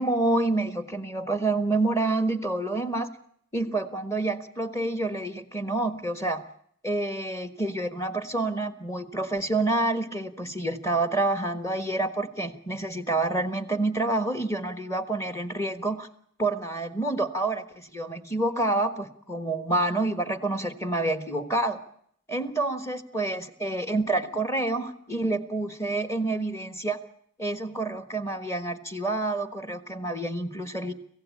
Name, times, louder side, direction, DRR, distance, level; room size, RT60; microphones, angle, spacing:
voice 1, 0.0-3.1 3.5-6.4 6.8-16.1 16.4-21.8 22.3-27.0 27.4-30.9, right 2 dB, 15° left, 10 dB, 1.4 m, -28 dB
25.5 x 15.5 x 8.5 m, 0.68 s
head